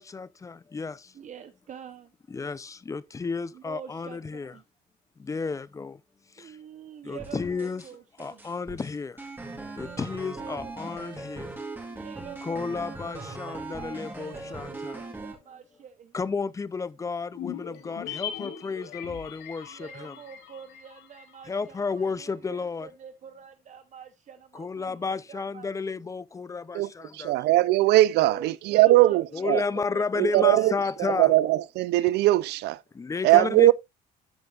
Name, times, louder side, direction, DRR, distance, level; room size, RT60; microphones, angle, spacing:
voice 1, 0.0-1.1 2.3-4.6 5.2-6.0 6.4-6.5 7.0-7.9 8.2-9.2 9.8-11.5 12.4-15.0 16.1-20.2 21.4-22.9 24.5-27.3 29.3-31.3 32.9-33.7, left 4 dB, 20° left, 0.5 m, -32 dB
voice 2, 1.1-2.1 3.5-4.2 4.5-4.6 6.4-8.5 9.8-10.0 10.3-10.7 11.9-16.1 19.7-25.7 28.2-31.2, right 8 dB, 45° right, 0.9 m, -46 dB
sound 1, 7.2-7.9 8.2-15.4, right 3 dB, 10° right, 2.5 m, -39 dB
sound 2, 17.3-21.8 22.1-22.2, left 9 dB, 80° left, 1.8 m, -40 dB
voice 3, 26.7-29.6 30.2-30.7 31.2-32.8 33.2-33.7, right 17 dB, 80° right, 0.5 m, -20 dB
13.5 x 5.3 x 2.4 m
cardioid pair, 110°, 17 cm